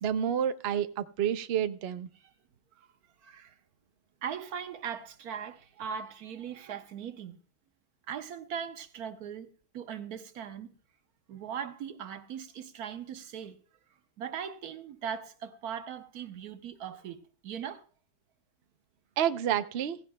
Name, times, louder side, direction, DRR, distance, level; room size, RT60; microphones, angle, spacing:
voice 1, 0.0-2.1 19.2-20.0, right 9 dB, 55° right, 0.7 m, -29 dB
voice 2, 3.2-3.5 4.2-7.4 8.1-10.7 11.3-13.6 14.2-17.8, right 8 dB, 80° right, 1.4 m, -39 dB
16.0 x 15.5 x 2.2 m
omnidirectional pair, 1.6 m